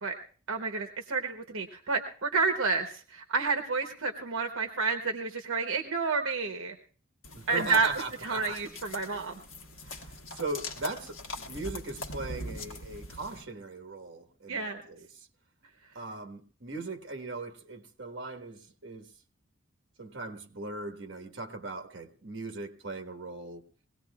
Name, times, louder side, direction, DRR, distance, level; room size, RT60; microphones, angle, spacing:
voice 1, 0.5-6.8 7.5-7.9 8.2-9.4 14.5-14.8, right 4 dB, 75° right, 5 dB, 1.0 m, -30 dB
sound 1, 7.2-13.4, left 1 dB, 65° left, 1.4 m, -42 dB
voice 2, 7.3-8.6 9.8-15.3 15.9-19.1 20.0-23.6, right 3 dB, 60° right, 5 dB, 1.4 m, -39 dB
22.0 x 17.5 x 2.4 m, 0.43 s
head